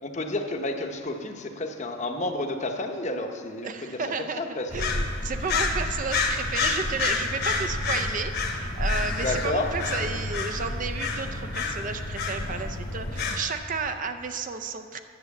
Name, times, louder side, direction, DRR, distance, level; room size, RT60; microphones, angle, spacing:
voice 1, 0.0-4.0 4.4-4.8 9.2-9.8, left 2 dB, 35° left, 4 dB, 0.8 m, -30 dB
voice 2, 3.6-15.0, right 5 dB, 40° right, 8 dB, 0.5 m, -32 dB
sound 1, 4.7-13.4, left 3 dB, 55° left, 1.2 m, -29 dB
10.5 x 7.8 x 7.0 m, 2.1 s
head